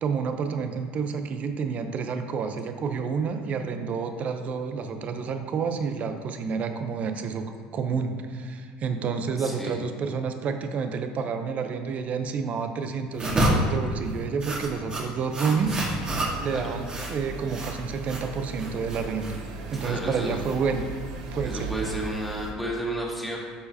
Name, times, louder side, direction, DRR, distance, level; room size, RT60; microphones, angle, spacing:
voice 1, 0.0-7.5 7.7-15.8 16.4-19.4 19.7-20.9 21.3-21.9, right 5 dB, 45° right, 7 dB, 0.7 m, -29 dB
voice 2, 9.4-9.8 15.6-16.0 16.5-16.7 19.7-20.4 21.4-23.4, equal, ahead, -4 dB, 1.8 m, -32 dB
sound 1, 13.1-21.0, right 1 dB, 30° right, 1.7 m, -30 dB
sound 2, 15.5-22.5, right 4 dB, 80° right, 0.9 m, -38 dB
11.5 x 4.7 x 2.8 m, 2.1 s
supercardioid pair, 90°, 3 cm